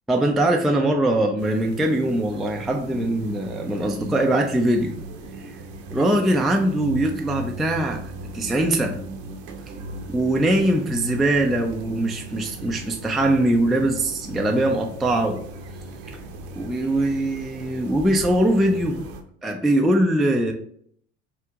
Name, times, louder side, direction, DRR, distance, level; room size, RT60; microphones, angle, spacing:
voice 1, 0.1-4.9 5.9-8.0 8.3-9.0 10.1-15.4 16.1-16.2 16.5-19.0 19.4-20.5, right 1 dB, ahead, 2 dB, 0.3 m, -22 dB
sound 1, 1.4-19.2, right 1 dB, 65° right, 0.7 m, -37 dB
4.5 x 2.6 x 2.3 m, 0.63 s
hypercardioid pair, 70°, 33 cm